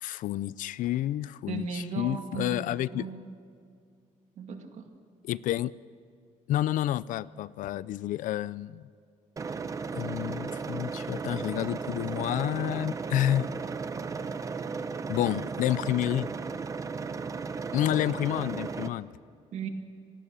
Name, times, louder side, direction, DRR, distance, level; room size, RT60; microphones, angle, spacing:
voice 1, 0.0-3.1 5.2-5.7 6.5-8.9 9.9-13.5 15.1-16.3 17.7-19.1, left 13 dB, 80° left, 19 dB, 0.5 m, -29 dB
voice 2, 1.5-3.3 4.4-4.9 19.5-19.7, right 5 dB, 60° right, 5 dB, 2.1 m, -36 dB
sound 1, 9.4-18.9, right 5 dB, 25° right, 0.7 m, -35 dB
26.0 x 18.5 x 6.9 m, 2.3 s
cardioid pair, 165°, 13 cm